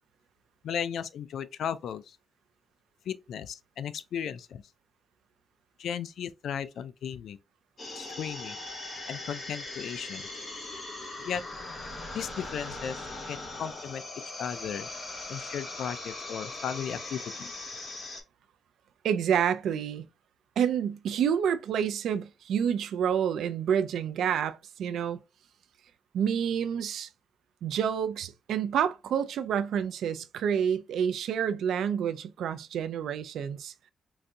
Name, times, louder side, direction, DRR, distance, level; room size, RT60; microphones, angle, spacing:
voice 1, 0.6-2.2 3.1-4.6 5.8-7.4 7.9-8.6 9.1-10.2 11.2-11.4 12.1-14.0 14.4-14.9 15.3-17.5, left 8 dB, 75° left, 0.3 m, -35 dB
sound 1, 7.8-18.2, left 2 dB, 35° left, 1.1 m, -40 dB
voice 2, 19.0-20.1 20.6-25.2 26.1-27.1 27.6-33.7, right 8 dB, 85° right, 0.3 m, -28 dB
3.9 x 2.6 x 2.2 m
wide cardioid pair, 145°, 0 cm